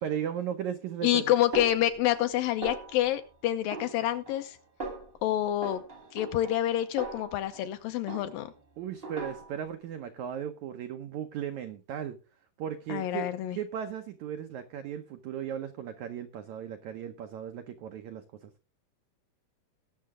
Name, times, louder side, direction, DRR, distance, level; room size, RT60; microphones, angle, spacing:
voice 1, 0.0-1.3 8.8-12.2 12.6-18.5, right 9 dB, 90° right, 8 dB, 1.6 m, -36 dB
voice 2, 1.0-4.6 5.2-5.8 6.1-8.5 12.9-13.6, left 13 dB, 75° left, 10 dB, 2.3 m, -27 dB
Snare drum, 1.5-2.3 2.6-3.2 3.7-4.5 4.8-5.2 5.6-7.7 8.1-8.6 9.0-9.7, right 2 dB, 40° right, 0.8 m, -40 dB
20.0 x 6.7 x 3.6 m, 0.32 s
omnidirectional pair, 4.5 m